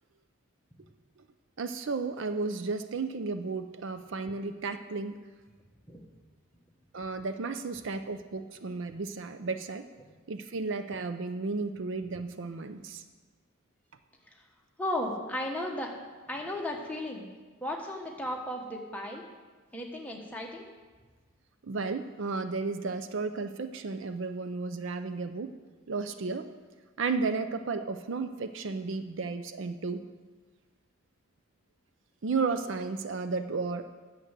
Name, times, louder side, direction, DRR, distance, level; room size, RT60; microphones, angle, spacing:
voice 1, 1.6-5.2 6.9-9.9 10.3-13.0 21.7-25.5 25.9-26.5 27.0-30.0 32.2-33.8, right 4 dB, 60° right, 9 dB, 0.5 m, -33 dB
voice 2, 14.8-15.9 16.3-17.3 17.6-19.3 19.7-20.7, left 1 dB, 5° left, -1 dB, 1.2 m, -35 dB
9.2 x 6.5 x 7.4 m, 1.4 s
head